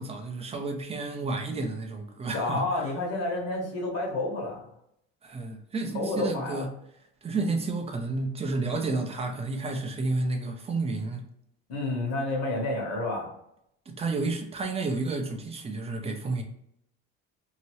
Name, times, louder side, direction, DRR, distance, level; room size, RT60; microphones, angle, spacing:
voice 1, 0.0-2.6 5.2-6.7 7.2-11.3 13.9-16.4, right 3 dB, 20° right, 4 dB, 0.5 m, -31 dB
voice 2, 2.3-4.6 5.9-6.6 11.7-13.3, left 2 dB, 60° left, -1 dB, 1.2 m, -30 dB
2.8 x 2.6 x 3.0 m, 0.75 s
cardioid pair, 135°, 29 cm